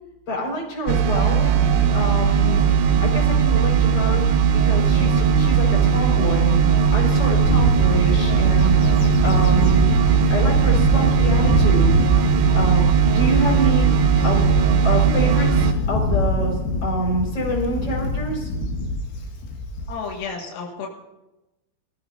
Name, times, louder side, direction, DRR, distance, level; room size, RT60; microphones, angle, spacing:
voice 1, 0.3-1.5 1.9-2.6 3.0-4.2 4.5-6.6 6.9-8.8 9.2-10.0 10.3-12.0 12.5-13.9 14.2-14.4 14.8-16.5 16.8-18.5, right 1 dB, 25° left, -2 dB, 5.0 m, -26 dB
sound 1, 0.9-15.7, right 6 dB, 75° right, 2.7 m, -18 dB
Bird / Wind, 7.4-20.2, left 2 dB, 60° left, 3.0 m, -25 dB
voice 2, 19.9-20.9, left 5 dB, 80° left, -1 dB, 4.6 m, -31 dB
24.5 x 14.5 x 2.7 m, 0.98 s
omnidirectional pair, 6.0 m